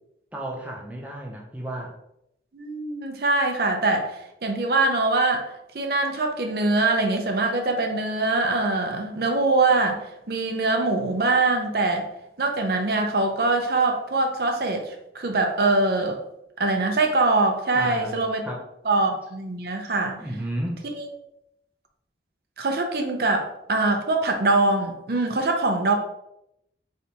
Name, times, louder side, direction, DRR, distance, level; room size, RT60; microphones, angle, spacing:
voice 1, 0.3-1.9 17.7-18.6 20.2-20.9, right 1 dB, 10° right, -1 dB, 0.5 m, -33 dB
voice 2, 2.5-12.1 12.4-16.2 16.6-18.4 18.8-20.2 20.9-21.1 22.6-25.9, right 2 dB, 60° right, 3 dB, 0.6 m, -23 dB
4.0 x 3.3 x 2.8 m, 0.80 s
head